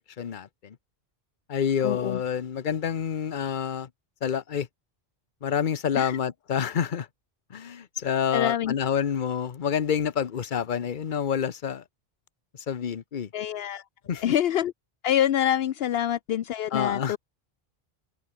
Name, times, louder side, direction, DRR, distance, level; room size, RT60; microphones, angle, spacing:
voice 1, 0.2-0.8 1.5-3.9 4.2-4.7 5.4-7.1 7.5-11.8 12.5-13.3 14.0-14.3 16.7-17.2, left 8 dB, 55° left, 1.0 m, -28 dB
voice 2, 1.8-2.2 5.9-6.2 8.3-8.7 13.3-13.8 14.2-14.7 15.0-17.2, left 11 dB, 75° left, 0.8 m, -26 dB
omnidirectional pair, 1.0 m